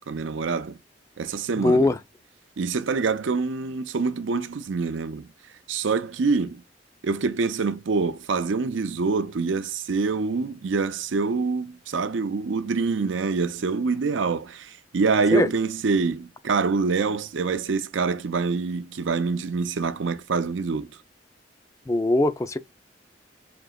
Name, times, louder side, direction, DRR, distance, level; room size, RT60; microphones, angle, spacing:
voice 1, 0.1-0.8 1.2-1.9 2.6-5.3 5.7-6.6 7.0-20.9, right 4 dB, 90° right, 0.5 m, -25 dB
voice 2, 1.6-2.0 15.3-15.5 21.9-22.6, left 2 dB, 15° left, 0.4 m, -21 dB
5.2 x 2.8 x 2.2 m
head